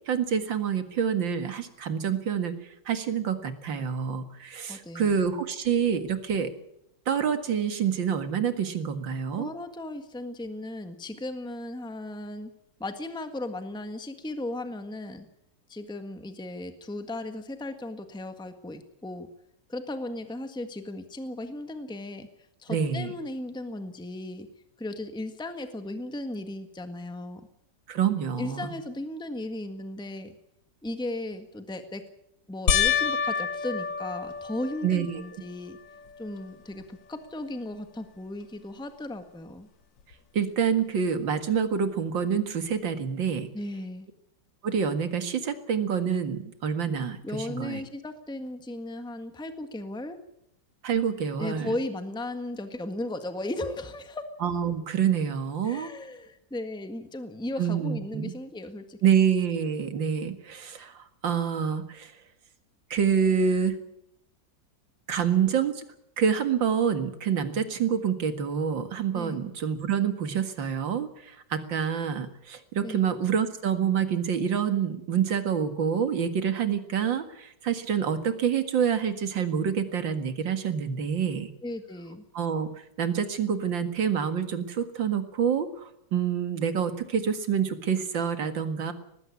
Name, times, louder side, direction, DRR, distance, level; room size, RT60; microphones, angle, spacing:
voice 1, 0.1-2.5 2.9-6.5 7.1-9.5 22.7-23.1 27.9-28.7 34.8-35.2 40.3-43.5 44.6-47.8 50.8-51.7 54.4-55.9 57.6-58.3 59.0-62.1 62.9-63.8 65.1-65.8 66.2-81.5 82.3-82.7 83.0-88.9, right 7 dB, 85° right, 9 dB, 2.5 m, -27 dB
voice 2, 4.7-5.2 9.4-12.5 12.8-15.3 15.7-19.3 19.7-22.3 22.6-24.5 24.8-27.4 28.4-30.3 30.8-32.0 32.5-35.8 36.2-39.7 43.5-44.1 47.2-50.2 51.4-54.3 55.6-59.0 69.1-69.4 72.8-73.1 81.6-82.2, left 1 dB, 5° left, 8 dB, 1.4 m, -36 dB
sound 1, 32.7-35.3 35.9-36.5 36.8-36.9 40.1-40.2, left 7 dB, 80° left, 2.1 m, -28 dB
19.5 x 15.5 x 9.6 m, 0.77 s
omnidirectional pair, 2.0 m